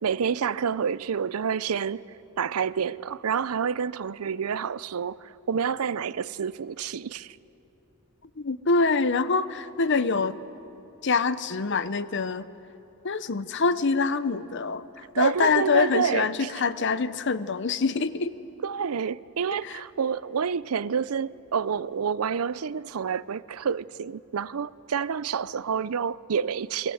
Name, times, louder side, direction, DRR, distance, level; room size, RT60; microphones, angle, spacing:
voice 1, 0.0-2.0 2.4-7.4 15.1-16.5 18.6-26.9, right 7 dB, 85° right, 0.5 m, -28 dB
voice 2, 8.4-10.4 11.0-12.5 13.0-18.3 19.6-19.8, left 4 dB, 55° left, 0.8 m, -25 dB
28.0 x 22.5 x 7.9 m
head